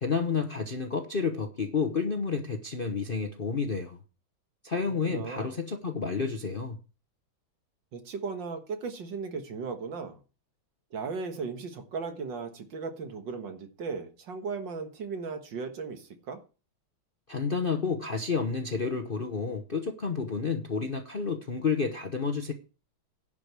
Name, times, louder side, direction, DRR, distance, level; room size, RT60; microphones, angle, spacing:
voice 1, 0.0-4.0 4.6-6.8 17.3-22.5, left 5 dB, 40° left, 0.8 m, -30 dB
voice 2, 5.0-5.6 7.9-10.2 10.9-16.4, right 5 dB, 65° right, 2.1 m, -36 dB
11.0 x 5.0 x 8.2 m
omnidirectional pair, 2.2 m